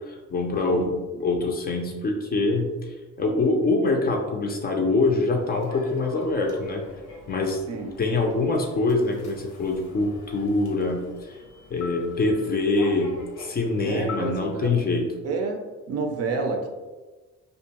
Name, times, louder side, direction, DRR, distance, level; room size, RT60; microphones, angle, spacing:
voice 1, 0.1-2.8 3.2-6.8 7.3-7.6 8.0-11.4 11.7-15.0, left 3 dB, 30° left, 2 dB, 0.4 m, -24 dB
Human voice / Subway metro underground, 5.4-14.8, left 3 dB, 80° left, 0.7 m, -43 dB
voice 2, 13.8-14.7 15.2-16.7, right 4 dB, 55° right, 3 dB, 0.5 m, -29 dB
2.5 x 2.2 x 2.8 m, 1.2 s
cardioid pair, 90°, 30 cm